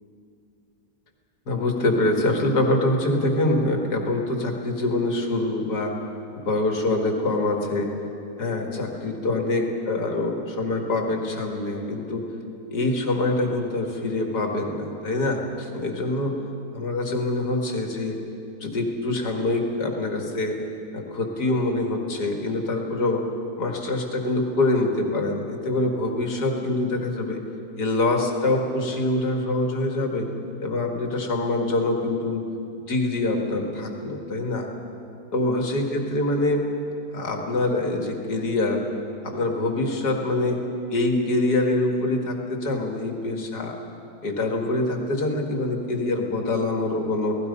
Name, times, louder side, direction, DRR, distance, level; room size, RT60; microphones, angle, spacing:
voice 1, 1.5-5.9 6.3-7.9 8.4-12.3 12.7-16.3 16.7-18.2 18.6-20.6 20.9-23.2 23.6-27.4 27.8-30.3 30.6-32.5 32.9-34.7 35.3-36.7 37.1-38.8 39.2-40.6 40.9-43.7 44.2-47.4, left 2 dB, 85° left, 2 dB, 2.7 m, -25 dB
29.5 x 18.0 x 5.5 m, 2.8 s
omnidirectional pair, 1.7 m